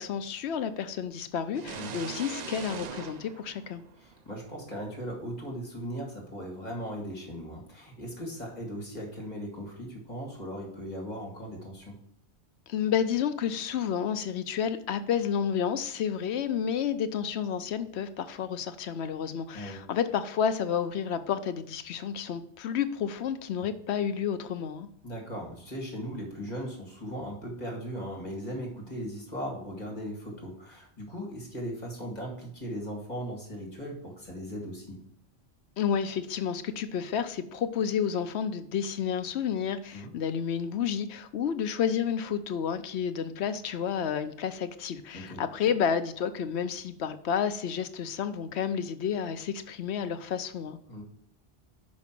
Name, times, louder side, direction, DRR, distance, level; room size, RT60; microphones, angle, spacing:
voice 1, 0.0-3.8 12.7-24.9 35.8-50.8, left 8 dB, 75° left, 11 dB, 0.9 m, -30 dB
sound 1, 1.5-4.4, right 6 dB, 50° right, 0.5 m, -41 dB
voice 2, 4.0-12.0 19.5-19.8 25.0-35.0 39.9-40.1 45.1-45.4 50.9-51.0, equal, 40° left, -1 dB, 2.2 m, -38 dB
6.0 x 5.3 x 5.9 m, 0.69 s
omnidirectional pair, 1.1 m